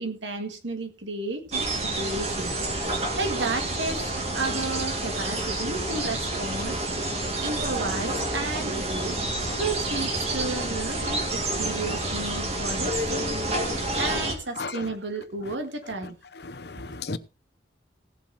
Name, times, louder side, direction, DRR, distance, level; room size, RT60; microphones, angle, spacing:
voice 1, 0.0-2.6 3.0-6.8 7.4-9.2 9.5-13.3 14.0-16.2 16.8-17.0, right 3 dB, 85° right, 2.2 m, -33 dB
sound 1, 1.5-14.3, right 1 dB, 35° right, 2.4 m, -29 dB
voice 2, 16.5-17.2, left 3 dB, 60° left, 0.8 m, -34 dB
17.0 x 7.4 x 4.2 m
head